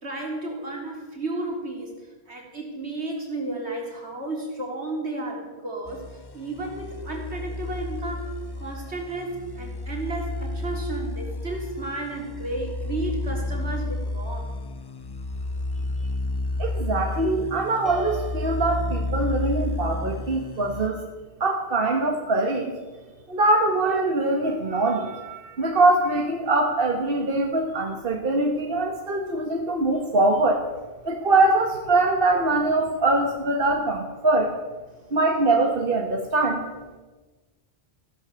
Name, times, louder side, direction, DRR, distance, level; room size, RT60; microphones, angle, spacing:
voice 1, 0.0-6.0 6.3-14.6, right 2 dB, 85° right, -1 dB, 3.8 m, -33 dB
sound 1, 5.9-20.9, left 2 dB, 30° left, 0.5 m, -31 dB
voice 2, 16.6-21.1 21.4-22.7 23.3-30.6 31.0-34.5 35.1-36.7, right 2 dB, 55° right, 2 dB, 1.6 m, -23 dB
Piano, 17.9-19.8, right 1 dB, ahead, 3.1 m, -41 dB
15.5 x 11.5 x 7.0 m, 1.2 s
omnidirectional pair, 1.1 m